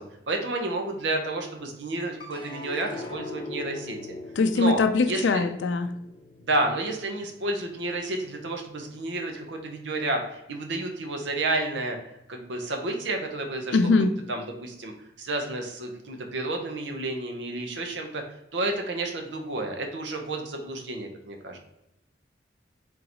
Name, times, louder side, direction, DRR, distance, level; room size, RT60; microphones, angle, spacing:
voice 1, 0.0-4.0 4.5-4.8 5.1-5.4 6.4-12.0 12.3-13.9 14.3-14.9 15.2-18.2 18.5-21.6, right 2 dB, 75° right, 3 dB, 0.8 m, -30 dB
sound 1, 2.2-8.6 9.1-9.8, left 2 dB, 25° left, 0.7 m, -42 dB
voice 2, 4.4-5.9 13.7-14.1, left 3 dB, 75° left, 8 dB, 0.4 m, -22 dB
3.9 x 3.7 x 2.9 m, 0.89 s
head